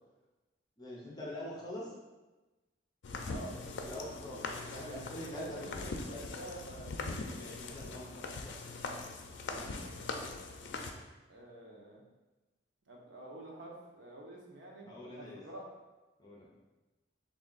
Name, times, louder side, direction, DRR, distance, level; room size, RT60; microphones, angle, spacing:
voice 1, 0.8-1.9 3.8-6.3 7.3-8.8 9.5-9.7 14.9-15.4 16.2-16.5, left 1 dB, 20° left, -4 dB, 0.6 m, -45 dB
sound 1, 3.0-10.9, left 3 dB, 75° left, 0.4 m, -41 dB
voice 2, 3.3-4.0 4.7-7.6 11.3-12.0 12.9-15.6, right 1 dB, 80° right, -2 dB, 0.8 m, -49 dB
3.4 x 2.6 x 3.9 m, 1.1 s
head